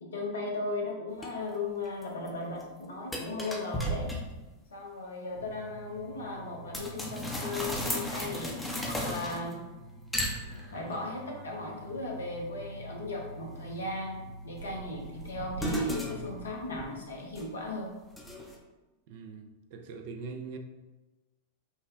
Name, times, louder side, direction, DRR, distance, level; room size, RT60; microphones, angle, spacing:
voice 1, 0.0-4.1 4.7-9.6 10.7-17.9, left 2 dB, 70° left, 0.7 m, -37 dB
sound 1, 1.2-1.3 1.9-2.3 2.6-2.7 3.1-4.5 6.7-9.7 10.1-11.0 14.6-17.7 18.2-18.6, equal, 10° left, 0.6 m, -35 dB
sound 2, 5.3-16.5, right 1 dB, 85° right, 1.2 m, -47 dB
voice 2, 19.1-20.6, right 5 dB, 50° right, 0.4 m, -42 dB
5.4 x 2.1 x 2.4 m
figure-of-eight pair, 90°, 0 cm